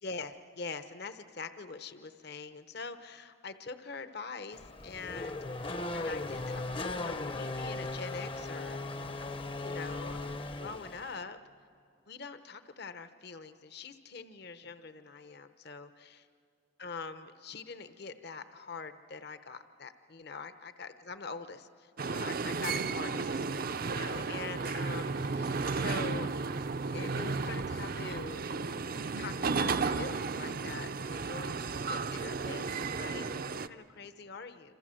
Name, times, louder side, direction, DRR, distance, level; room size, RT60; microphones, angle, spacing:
voice 1, 0.0-8.8 9.6-10.2 10.6-11.4 12.1-16.3 16.8-26.3 26.9-28.4 29.1-34.8, left 4 dB, 55° left, 10 dB, 0.9 m, -44 dB
Race car auto racing / Accelerating revving vroom, 4.5-11.2, left 2 dB, 25° left, 0.7 m, -37 dB
sound 1, 22.0-33.7, right 4 dB, 45° right, 0.6 m, -34 dB
27.0 x 27.0 x 7.7 m, 2.5 s
head